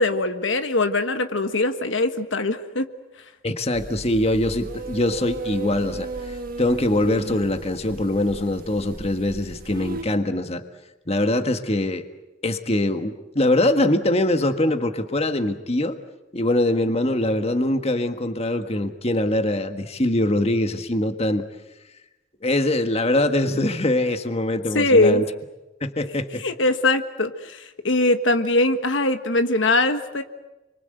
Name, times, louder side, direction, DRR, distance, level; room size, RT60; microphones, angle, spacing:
voice 1, 0.0-2.8 24.7-25.2 26.4-30.2, left 2 dB, 65° left, 8 dB, 1.5 m, -21 dB
voice 2, 3.4-10.6 11.1-12.0 12.4-16.0 16.3-21.5 22.4-25.2 25.8-26.4, left 1 dB, 30° left, 7 dB, 1.6 m, -23 dB
sound 1, 3.7-10.0, right 3 dB, 45° right, 1.6 m, -35 dB
30.0 x 24.0 x 8.0 m, 1.0 s
head